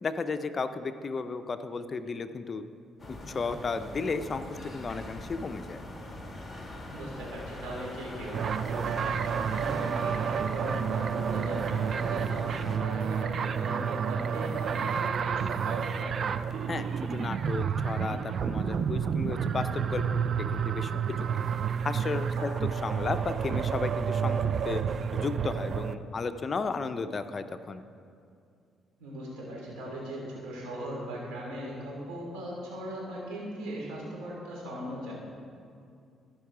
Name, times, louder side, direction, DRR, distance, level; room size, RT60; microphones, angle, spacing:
voice 1, 0.0-2.7 3.1-5.8 16.7-21.4 21.8-22.5 22.8-24.8 25.1-27.8, left 4 dB, 40° left, 10 dB, 0.5 m, -34 dB
sound 1, 3.0-12.8, left 1 dB, 20° left, 1.5 m, -42 dB
voice 2, 6.9-16.1 22.4-22.5 29.0-35.1, right 1 dB, 90° right, -3 dB, 2.8 m, -39 dB
sound 2, 8.3-25.9, right 7 dB, 50° right, 0.4 m, -30 dB
15.0 x 5.4 x 4.9 m, 2.4 s
cardioid pair, 85°, 0 cm